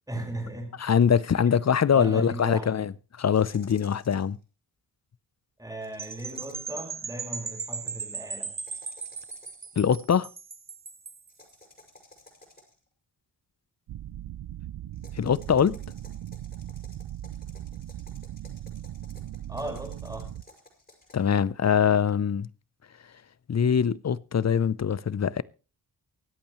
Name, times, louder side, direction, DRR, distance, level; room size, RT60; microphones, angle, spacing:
voice 1, 0.1-0.9 1.9-2.9 5.6-8.6 19.5-20.3, right 1 dB, 10° right, 5.0 m, -37 dB
voice 2, 0.8-2.9 3.2-4.4 9.8-10.3 15.2-15.8 21.1-22.5 23.5-25.4, left 7 dB, 40° left, 0.6 m, -23 dB
sound 1, 3.3-4.4 5.8-6.8 8.5-9.7 11.3-12.9 14.9-21.1, left 2 dB, 25° left, 6.1 m, -54 dB
sound 2, 6.0-11.3, right 5 dB, 30° right, 0.9 m, -37 dB
sound 3, 13.9-20.4, right 12 dB, 75° right, 0.6 m, -39 dB
23.5 x 8.5 x 3.1 m
cardioid pair, 75°, 41 cm